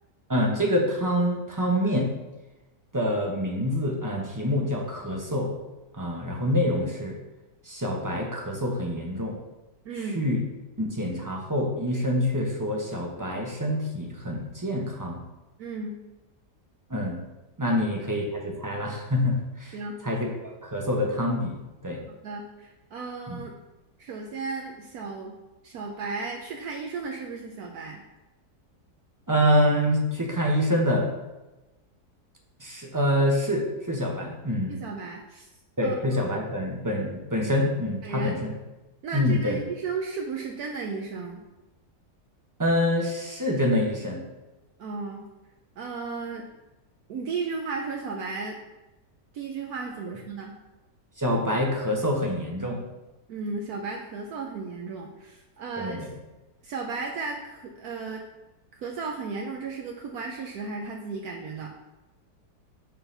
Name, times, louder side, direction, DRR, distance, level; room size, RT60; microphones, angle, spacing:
voice 1, 0.3-2.1 2.9-5.5 5.9-7.1 7.6-9.4 10.1-10.4 10.8-15.2 16.9-17.2 17.6-19.8 20.0-21.6 21.8-22.0 23.3-23.4 29.3-31.1 32.6-34.8 35.8-38.5 39.1-39.6 42.6-44.2 51.2-52.8 55.8-56.1, equal, 15° right, -1 dB, 0.8 m, -26 dB
voice 2, 9.8-10.2 15.6-16.0 17.7-17.8 19.7-20.0 22.2-23.5 24.0-25.4 25.6-28.0 34.7-35.5 35.8-36.2 38.0-38.3 39.0-41.4 44.8-45.3 45.8-46.5 47.1-48.6 49.3-50.6 53.3-56.1 56.6-58.2 58.7-61.7, right 4 dB, 70° right, 0 dB, 1.2 m, -34 dB
7.0 x 3.8 x 5.6 m, 1.1 s
omnidirectional pair, 1.8 m